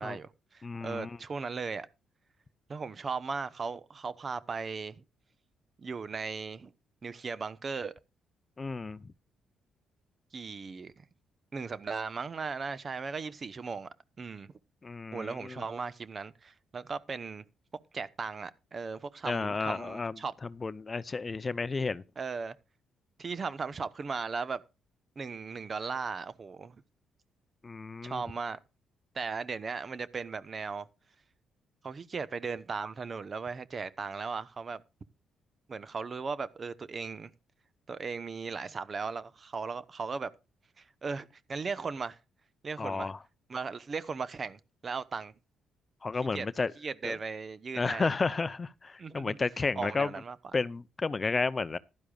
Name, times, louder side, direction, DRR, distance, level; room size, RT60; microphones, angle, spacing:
voice 1, 0.0-1.9 2.7-5.0 5.8-6.7 7.0-7.9 10.3-11.0 11.5-13.9 14.2-14.5 15.1-17.4 17.9-20.3 22.2-22.6 23.2-24.6 25.2-26.8 28.0-28.6 29.1-30.9 31.8-34.8 35.7-37.3 37.9-40.3 40.8-42.2 42.6-43.1 43.5-45.3 46.3-46.5 46.8-48.1 49.0-49.4 49.8-50.4, right 5 dB, 40° right, 1.0 m, -37 dB
voice 2, 0.6-1.2 8.6-9.0 14.8-15.6 19.2-20.1 20.6-22.0 27.6-28.2 42.8-43.2 46.0-46.7 47.0-47.1 47.8-50.1 50.5-51.8, left 4 dB, 30° left, 0.6 m, -32 dB
15.5 x 12.0 x 2.4 m
cardioid pair, 90°, 0 cm